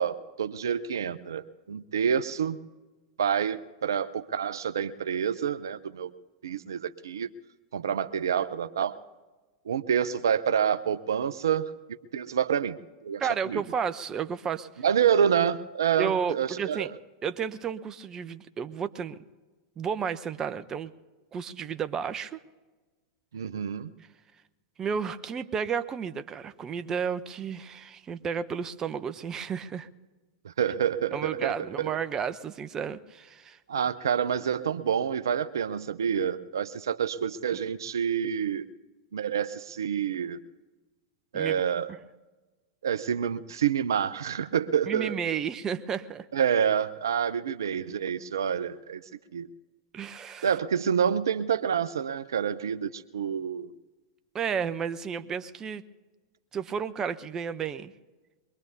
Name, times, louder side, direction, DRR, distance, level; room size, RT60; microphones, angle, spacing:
voice 1, 0.0-2.6 3.2-6.1 6.4-7.3 7.7-9.0 9.7-11.7 12.1-12.8 13.0-13.6 14.8-16.9 23.3-23.9 30.4-31.9 33.7-38.7 39.1-40.4 41.3-41.9 42.8-45.2 46.3-49.0 49.3-49.5 50.4-53.7, right 8 dB, 80° right, 12 dB, 0.6 m, -28 dB
voice 2, 13.2-14.8 16.0-16.9 17.2-19.2 19.8-20.9 21.3-22.4 24.8-29.9 31.1-33.6 41.3-41.6 44.9-46.3 49.9-50.5 54.3-55.8 56.5-57.9, right 7 dB, 25° right, 12 dB, 0.7 m, -32 dB
23.0 x 22.0 x 2.8 m, 1.2 s
hypercardioid pair, 95°, 2 cm